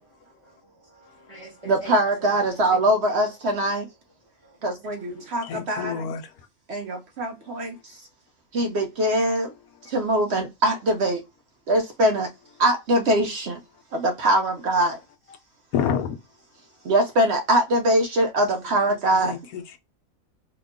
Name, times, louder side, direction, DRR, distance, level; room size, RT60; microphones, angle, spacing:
voice 1, 0.2-2.9 4.4-5.7, right 1 dB, 25° right, 0.9 m, -47 dB
voice 2, 1.7-3.8 4.6-6.0 6.7-7.7 8.5-9.5 9.9-11.2 11.7-12.3 12.6-13.6 13.9-15.0 16.9-19.3, right 1 dB, 60° right, 0.7 m, -22 dB
voice 3, 5.4-6.3 15.7-16.2 19.2-19.8, left 7 dB, 85° left, 1.1 m, -28 dB
2.9 x 2.2 x 3.5 m
omnidirectional pair, 1.5 m